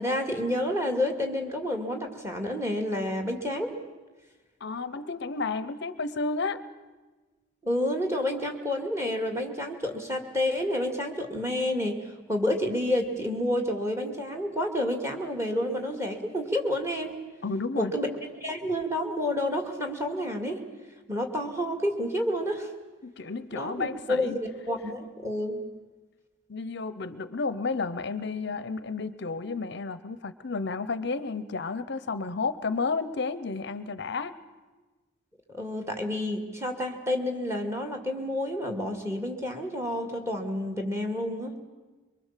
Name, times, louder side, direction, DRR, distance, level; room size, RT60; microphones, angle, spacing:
voice 1, 0.0-3.7 7.6-17.1 17.7-20.6 21.1-22.7 23.5-25.6 35.5-41.6, left 1 dB, 15° right, 4 dB, 2.2 m, -29 dB
voice 2, 4.6-6.6 17.4-17.9 23.0-24.3 26.5-34.4, left 4 dB, 55° left, 14 dB, 0.7 m, -32 dB
23.5 x 23.5 x 7.4 m, 1.2 s
head